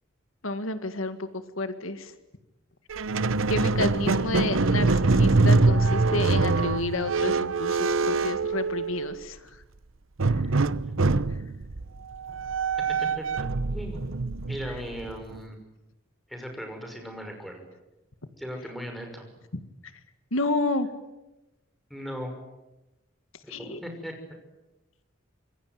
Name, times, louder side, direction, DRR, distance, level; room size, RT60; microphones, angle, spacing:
voice 1, 0.4-2.1 3.5-9.6 10.5-10.6 11.3-11.4 14.7-14.8 19.5-19.6 20.3-20.9 23.5-23.8, left 2 dB, 80° left, 10 dB, 2.0 m, -30 dB
Squeak, 2.9-9.2 10.2-15.4, right 3 dB, 75° right, 0.9 m, -24 dB
voice 2, 13.7-14.1 14.5-15.6 16.3-17.6 18.4-19.3 21.9-22.3 23.4-24.1, equal, ahead, 4 dB, 6.0 m, -37 dB
26.5 x 22.5 x 9.4 m, 0.99 s
head